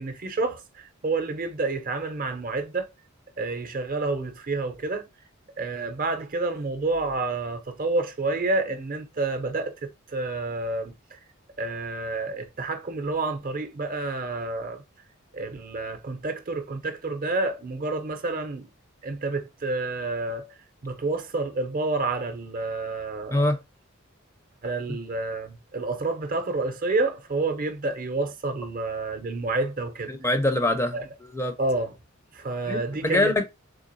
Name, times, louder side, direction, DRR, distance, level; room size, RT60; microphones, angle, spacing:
voice 1, 0.0-2.9 3.4-5.1 5.6-11.2 11.6-14.8 15.3-18.7 19.0-20.5 20.8-23.4 24.6-30.1 30.9-31.0 31.6-31.9 32.3-33.5, right 3 dB, 40° right, 0.6 m, -29 dB
voice 2, 30.1-31.5 32.7-33.4, left 1 dB, 10° left, 0.5 m, -24 dB
3.7 x 3.3 x 2.5 m
head